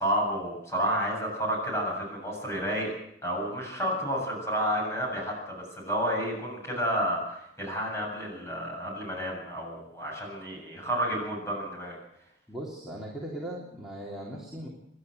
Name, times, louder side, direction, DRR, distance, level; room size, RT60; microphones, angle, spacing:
voice 1, 0.0-2.9 3.2-12.0, equal, 15° left, -1 dB, 7.7 m, -30 dB
voice 2, 12.5-14.7, right 1 dB, ahead, -6 dB, 3.3 m, -38 dB
28.0 x 12.0 x 8.1 m, 0.80 s
head